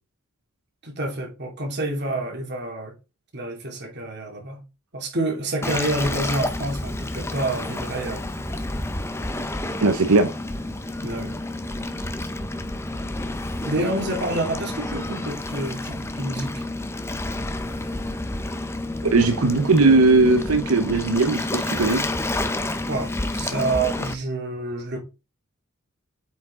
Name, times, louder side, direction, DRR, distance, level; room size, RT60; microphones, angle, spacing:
voice 1, 0.8-2.9 3.3-4.6 4.9-8.3 11.0-11.4 13.6-16.6 22.9-25.0, right 2 dB, 50° right, 2.7 m, -28 dB
Waves surf, 5.6-24.1, left 2 dB, 10° left, 0.7 m, -30 dB
voice 2, 9.8-10.3 19.0-22.0, right 3 dB, 90° right, 0.9 m, -18 dB
8.3 x 4.8 x 3.7 m
head